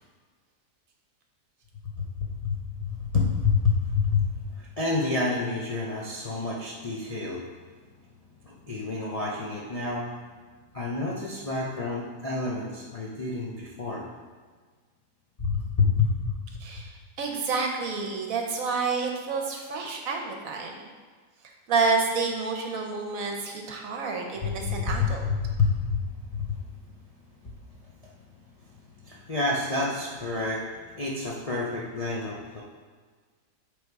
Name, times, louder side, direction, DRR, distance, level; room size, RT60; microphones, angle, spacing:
voice 1, 1.8-7.5 8.4-10.1 10.7-14.0 15.4-16.2 24.4-26.7 27.4-27.5 29.0-32.6, left 4 dB, 40° left, -5 dB, 0.5 m, -28 dB
voice 2, 16.6-16.9 17.2-20.7 21.7-25.2, right 4 dB, 60° right, 2 dB, 1.1 m, -29 dB
7.9 x 3.6 x 4.7 m, 1.5 s
omnidirectional pair, 1.8 m